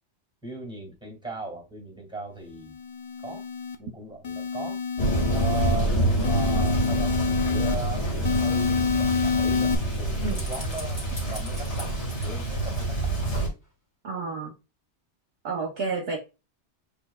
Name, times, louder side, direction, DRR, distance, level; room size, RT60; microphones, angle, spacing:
voice 1, 0.4-2.7 3.2-3.4 3.8-4.8 5.3-7.1 7.5-9.7 10.0-13.4, right 3 dB, 5° right, 2.0 m, -38 dB
sound 1, 2.6-3.7 4.2-5.8 6.2-7.7 8.2-9.7, left 6 dB, 50° left, 0.6 m, -27 dB
Thunder, 5.0-13.5, right 1 dB, 70° left, 2.1 m, -27 dB
sound 2, 8.0-13.3 13.6-13.7, left 1 dB, 15° left, 1.6 m, -45 dB
voice 2, 14.0-14.5 15.4-16.2, right 4 dB, 60° right, 1.0 m, -30 dB
6.7 x 3.5 x 2.3 m
omnidirectional pair, 1.2 m